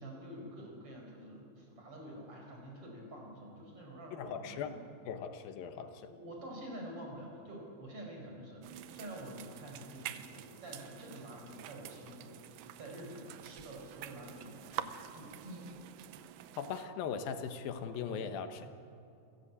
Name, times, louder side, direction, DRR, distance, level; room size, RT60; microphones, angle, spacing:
voice 1, 0.0-4.8 6.1-12.5 12.8-15.7 18.1-18.2, right 1 dB, 40° right, 0 dB, 5.6 m, -48 dB
voice 2, 4.1-4.7 5.1-6.1 16.6-18.7, left 7 dB, 85° left, 8 dB, 2.9 m, -39 dB
sound 1, 8.6-16.9, right 11 dB, 80° right, 2.5 m, -47 dB
28.5 x 15.5 x 8.6 m, 2.7 s
omnidirectional pair, 4.0 m